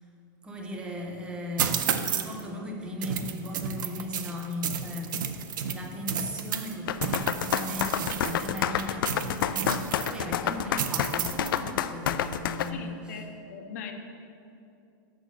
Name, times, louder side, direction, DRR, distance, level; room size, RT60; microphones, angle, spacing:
voice 1, 0.4-13.2, left 1 dB, 10° right, 1 dB, 0.7 m, -37 dB
sound 1, 1.6-2.4 3.0-6.7 7.0-10.2 10.8-11.6, right 8 dB, 70° right, 0.6 m, -32 dB
sound 2, 6.9-12.7, left 10 dB, 85° left, 0.4 m, -28 dB
voice 2, 12.7-13.9, left 6 dB, 50° left, 4 dB, 0.8 m, -40 dB
6.5 x 5.8 x 6.4 m, 2.6 s
supercardioid pair, 170°, 11 cm